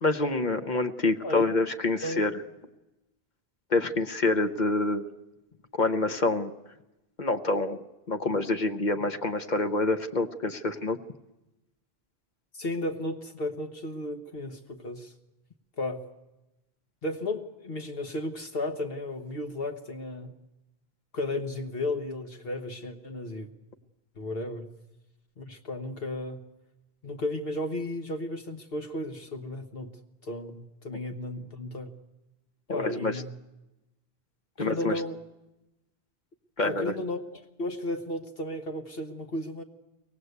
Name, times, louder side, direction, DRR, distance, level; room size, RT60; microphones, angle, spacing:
voice 1, 0.0-2.3 3.7-5.0 5.7-6.5 7.2-11.0 32.7-33.1 34.6-35.0 36.6-36.9, left 2 dB, 50° left, 8 dB, 1.0 m, -27 dB
voice 2, 12.5-15.1 15.8-16.1 17.0-20.3 21.1-23.5 24.2-24.7 25.4-26.4 27.0-29.9 30.2-31.9 32.7-33.3 34.6-35.2 36.6-39.6, left 1 dB, 70° left, 4 dB, 1.5 m, -34 dB
23.5 x 17.5 x 8.1 m, 0.99 s
omnidirectional pair, 1.0 m